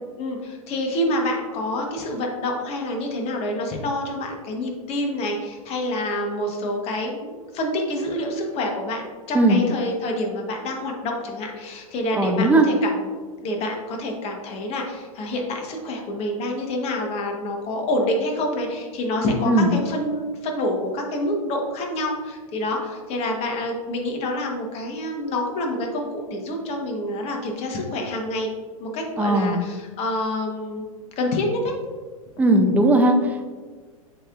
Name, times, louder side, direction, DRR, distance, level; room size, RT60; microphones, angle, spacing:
voice 1, 0.2-13.1 13.4-28.5 28.8-30.8 31.2-31.7, left 1 dB, 35° left, 1 dB, 1.0 m, -27 dB
voice 2, 12.1-12.7 19.5-19.7 29.2-29.6 32.4-33.2, right 2 dB, 10° right, 4 dB, 0.5 m, -17 dB
7.6 x 2.9 x 2.4 m, 1.4 s
hypercardioid pair, 105°, 19 cm